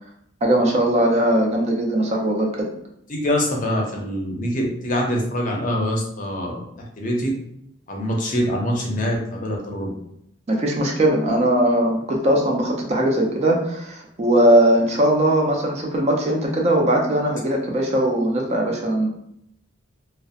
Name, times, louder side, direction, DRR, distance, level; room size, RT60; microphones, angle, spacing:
voice 1, 0.4-2.7 10.5-19.1, right 1 dB, 35° right, 0 dB, 0.4 m, -19 dB
voice 2, 3.1-6.6 7.0-7.3 7.9-9.9 17.2-17.3, equal, 45° left, 0 dB, 0.5 m, -24 dB
2.7 x 2.0 x 2.4 m, 0.74 s
head